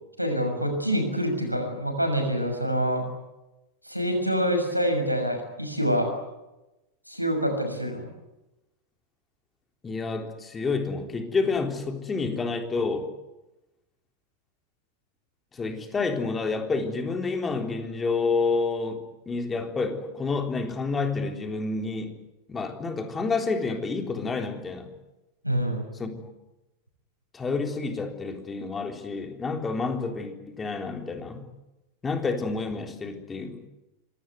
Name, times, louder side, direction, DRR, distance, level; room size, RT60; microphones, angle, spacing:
voice 1, 0.2-3.0 3.8-6.1 7.1-8.1 25.4-25.8, equal, 90° right, 5 dB, 6.5 m, -26 dB
voice 2, 9.8-13.1 15.5-22.1 22.5-24.9 26.0-26.3 27.3-31.5 32.0-33.7, left 4 dB, 15° left, 5 dB, 3.8 m, -29 dB
26.0 x 19.5 x 9.6 m, 0.99 s
figure-of-eight pair, 90°, 0 cm